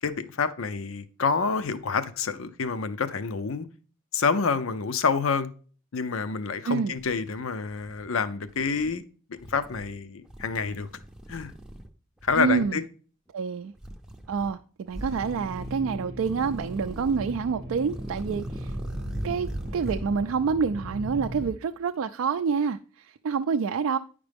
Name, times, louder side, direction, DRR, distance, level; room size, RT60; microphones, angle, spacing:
voice 1, 0.0-3.7 4.1-5.5 5.9-9.0 9.5-10.9 11.3-11.5 12.2-12.8, left 5 dB, 80° left, 0.6 m, -28 dB
sound 1, 6.9-8.1 8.5-8.9 9.4-9.9 10.3-11.9 12.2-12.7 13.8-14.5 14.9-15.8 16.2-17.4 17.8-20.1, right 1 dB, 5° right, 0.5 m, -39 dB
voice 2, 12.4-12.8 13.3-13.7 14.3-18.8 19.2-24.0, right 6 dB, 80° right, 0.3 m, -27 dB
sound 2, 15.0-21.5, equal, 45° right, 0.8 m, -39 dB
9.6 x 5.1 x 3.4 m
head